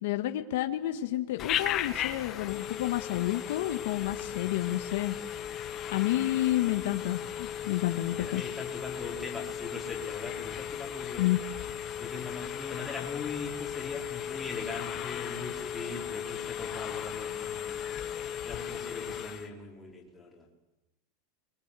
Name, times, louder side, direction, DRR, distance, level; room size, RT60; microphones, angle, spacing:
voice 1, 0.0-5.4 5.9-8.4 11.2-11.4, left 15 dB, 65° left, 7 dB, 1.5 m, -30 dB
Telephone, 1.4-19.5, left 10 dB, 25° left, 1.6 m, -36 dB
voice 2, 8.2-11.3 12.0-17.9 18.4-20.4, left 3 dB, 5° left, -3 dB, 4.4 m, -41 dB
29.5 x 23.5 x 8.4 m, 0.99 s
supercardioid pair, 170°, 0 cm